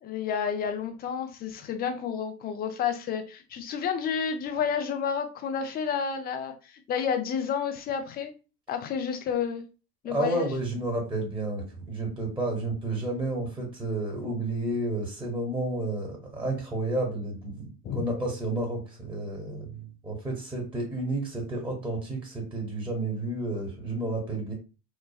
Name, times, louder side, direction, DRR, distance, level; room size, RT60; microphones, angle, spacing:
voice 1, 0.0-8.3 8.7-9.6 10.0-10.5 17.8-18.0, left 7 dB, 20° left, 0.4 m, -30 dB
voice 2, 10.0-24.5, right 2 dB, 5° right, 1.0 m, -31 dB
3.0 x 2.2 x 2.2 m
hypercardioid pair, 80°, 48 cm